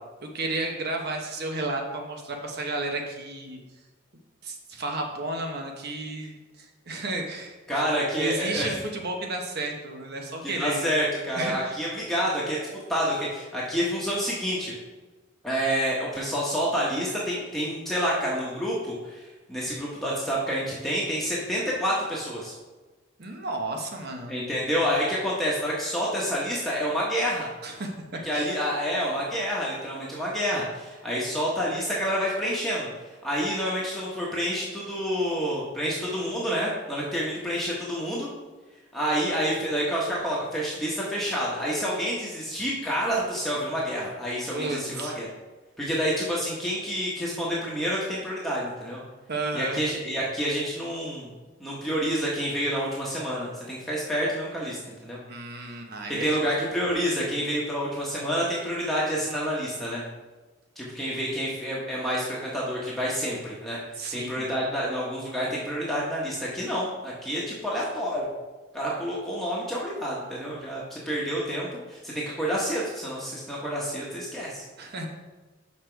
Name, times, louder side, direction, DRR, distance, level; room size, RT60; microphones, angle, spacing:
voice 1, 0.2-3.6 4.4-10.9 11.3-11.8 12.7-12.8 23.2-24.3 27.6-27.9 28.3-28.6 44.5-45.1 49.3-49.8 55.3-56.5 64.0-64.6 74.8-75.1, right 2 dB, 55° right, 2 dB, 1.1 m, -33 dB
voice 2, 7.7-8.8 10.6-12.6 12.9-14.7 15.4-22.5 24.3-27.5 28.2-32.9 33.2-38.3 38.9-45.3 45.8-49.0 49.5-51.3 51.6-55.2 56.1-60.0 60.8-63.8 64.1-68.2 68.7-74.6, equal, ahead, -6 dB, 1.2 m, -28 dB
6.3 x 5.8 x 4.6 m, 1.2 s
head